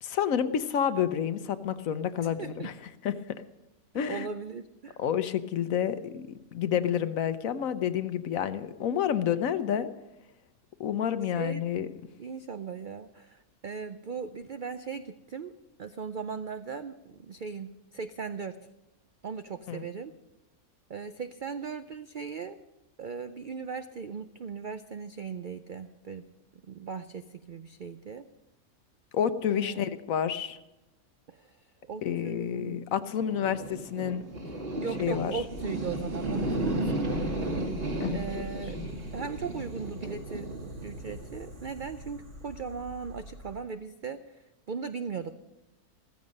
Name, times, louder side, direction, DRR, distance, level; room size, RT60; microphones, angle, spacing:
voice 1, 0.0-2.7 3.0-3.1 3.9-4.3 5.0-9.9 10.8-11.9 19.7-19.9 29.1-30.6 32.0-34.2 35.0-35.4 38.0-38.4, left 9 dB, 65° left, 12 dB, 1.1 m, -29 dB
voice 2, 2.2-2.7 4.1-5.0 6.7-7.1 11.4-11.6 12.2-15.5 15.8-18.6 19.2-20.1 20.9-22.6 23.0-26.2 26.6-28.3 29.5-29.9 31.3-31.6 31.9-32.8 33.3-33.5 34.8-37.4 38.1-38.8 39.1-45.4, right 5 dB, 85° right, 10 dB, 0.4 m, -38 dB
sound 1, 33.2-43.6, right 1 dB, 40° right, 2.0 m, -34 dB
15.0 x 15.0 x 5.3 m, 0.97 s
omnidirectional pair, 1.6 m